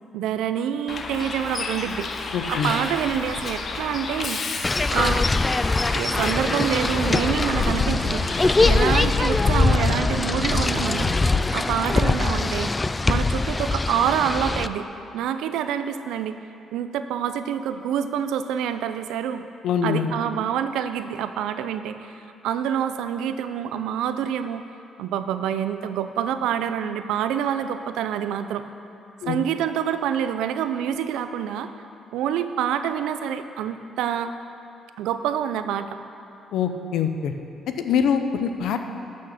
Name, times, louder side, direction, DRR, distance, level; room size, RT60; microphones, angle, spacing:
voice 1, 0.1-2.2 2.5-4.4 4.9-5.3 5.9-11.1 11.5-12.7 13.1-14.9 15.1-16.4 16.7-19.4 19.8-24.6 25.0-28.6 29.3-31.7 32.1-34.3 35.0-36.0, right 9 dB, 90° right, 10 dB, 0.5 m, -27 dB
Bus, 0.9-11.4, left 4 dB, 45° left, 0.9 m, -29 dB
voice 2, 2.3-2.7 19.6-20.1 29.2-29.4 36.5-37.3 37.8-38.8, left 7 dB, 80° left, 7 dB, 0.7 m, -24 dB
sound 1, 4.6-14.7, left 3 dB, 20° left, 0.3 m, -23 dB
11.5 x 6.4 x 5.7 m, 2.7 s
cardioid pair, 90°, 0 cm